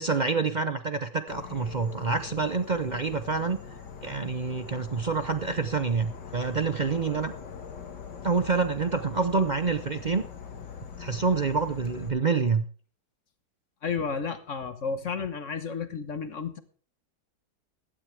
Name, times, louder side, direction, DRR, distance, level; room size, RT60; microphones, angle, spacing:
voice 1, 0.0-3.6 4.0-7.3 8.2-10.2 11.0-12.6, right 4 dB, 65° right, 10 dB, 0.4 m, -27 dB
Insect / Frog, 1.3-12.1, left 7 dB, 75° left, 2.3 m, -42 dB
voice 2, 13.8-16.6, left 5 dB, 50° left, 11 dB, 1.4 m, -32 dB
16.0 x 12.5 x 3.4 m, 0.41 s
omnidirectional pair, 1.8 m